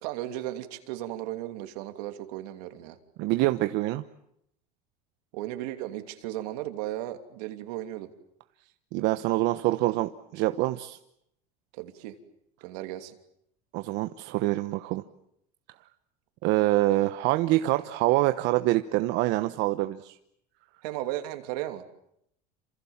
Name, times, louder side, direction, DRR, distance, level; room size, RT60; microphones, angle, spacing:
voice 1, 0.0-3.0 5.3-8.1 11.7-12.1 12.6-13.2 20.8-21.8, right 14 dB, 80° right, 7 dB, 3.0 m, -35 dB
voice 2, 3.2-4.0 8.9-11.0 13.7-15.0 16.4-20.2, right 17 dB, 65° right, 9 dB, 1.1 m, -25 dB
28.5 x 27.0 x 7.3 m, 0.77 s
supercardioid pair, 120°, 20 cm